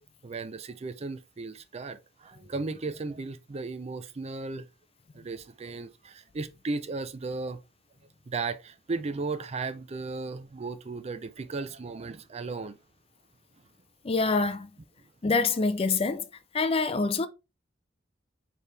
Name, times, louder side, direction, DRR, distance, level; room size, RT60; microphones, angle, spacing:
voice 1, 0.2-4.7 5.1-7.6 8.3-12.8, right 3 dB, 35° right, 0.5 m, -35 dB
voice 2, 14.0-14.7 15.2-16.3 16.5-17.3, left 4 dB, 30° left, 0.4 m, -25 dB
4.6 x 3.3 x 3.3 m
head